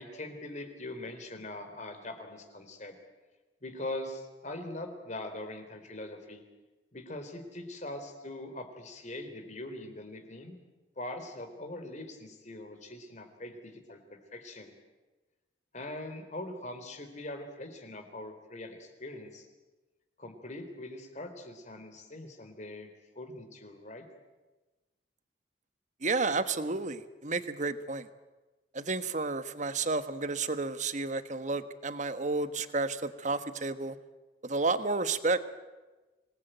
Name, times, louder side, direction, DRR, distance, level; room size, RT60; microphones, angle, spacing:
voice 1, 0.0-2.9 3.6-6.4 6.9-10.6 11.0-14.7 15.7-19.5 20.2-22.9 23.2-24.0, left 1 dB, 40° left, 6 dB, 3.8 m, -42 dB
voice 2, 26.0-28.1 28.7-34.0 34.4-35.4, right 3 dB, 45° right, 11 dB, 1.3 m, -31 dB
26.0 x 20.0 x 9.2 m, 1.2 s
head